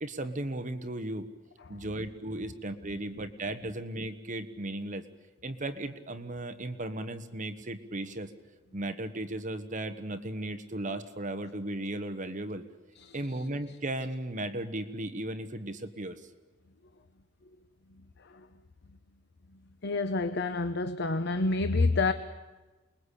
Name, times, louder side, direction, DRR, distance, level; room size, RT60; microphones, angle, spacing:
voice 1, 0.0-1.3 1.7-5.0 5.4-8.3 8.7-12.6 13.1-16.2, right 1 dB, 40° right, 9 dB, 1.3 m, -36 dB
voice 2, 19.8-22.1, left 3 dB, 60° left, 9 dB, 1.0 m, -28 dB
28.5 x 21.5 x 8.4 m, 1.2 s
head